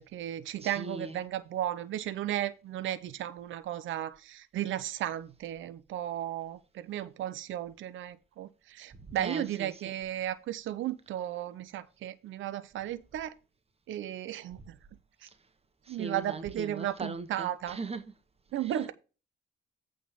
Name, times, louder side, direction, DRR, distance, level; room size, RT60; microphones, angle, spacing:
voice 1, 0.0-13.3 13.9-14.8 15.2-15.3 15.9-17.8 18.5-18.9, right 12 dB, 75° right, 0.8 m, -35 dB
voice 2, 0.6-1.2 9.2-9.7 15.9-18.1 18.6-18.7, right 3 dB, 30° right, 1.2 m, -39 dB
8.7 x 3.7 x 6.7 m
cardioid pair, 90°, 20 cm